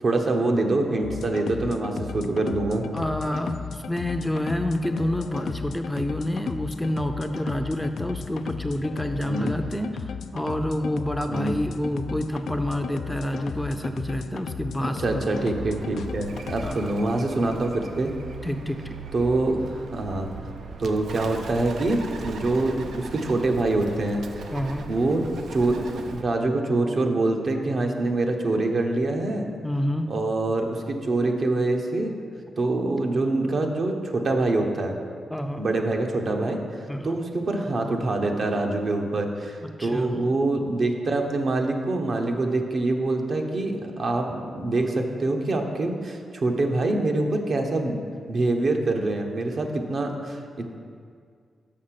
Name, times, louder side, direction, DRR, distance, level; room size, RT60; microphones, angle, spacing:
voice 1, 0.0-2.8 9.2-9.5 11.3-11.6 15.0-18.1 19.1-20.3 20.8-24.4 24.9-25.2 25.5-29.5 30.1-32.1 32.6-34.9 35.6-48.0 48.3-50.8, right 2 dB, 60° right, 3 dB, 0.9 m, -25 dB
sound 1, 1.0-16.8, left 6 dB, 80° left, 0.3 m, -35 dB
voice 2, 2.9-15.3 16.6-16.9 18.4-19.0 24.5-24.9 29.6-30.1 35.3-35.6 36.9-37.2 39.8-40.1, left 1 dB, 5° left, 6 dB, 0.5 m, -28 dB
Bird, 15.2-26.2, right 4 dB, 80° right, 0.5 m, -39 dB
6.4 x 5.9 x 5.8 m, 2.2 s
cardioid pair, 60°, 0 cm